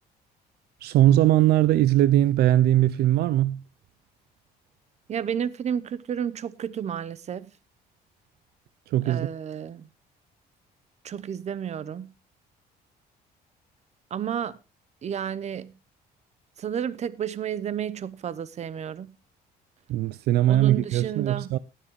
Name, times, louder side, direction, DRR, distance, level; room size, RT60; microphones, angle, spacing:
voice 1, 0.8-3.6 8.9-9.3 19.9-21.6, right 13 dB, 75° right, 0.5 m, -20 dB
voice 2, 5.1-7.5 9.0-9.9 11.0-12.1 14.1-14.6 15.0-15.7 16.6-19.1 20.5-21.6, right 8 dB, 40° right, 0.8 m, -31 dB
19.5 x 7.6 x 3.1 m
cardioid pair, 110°, 17 cm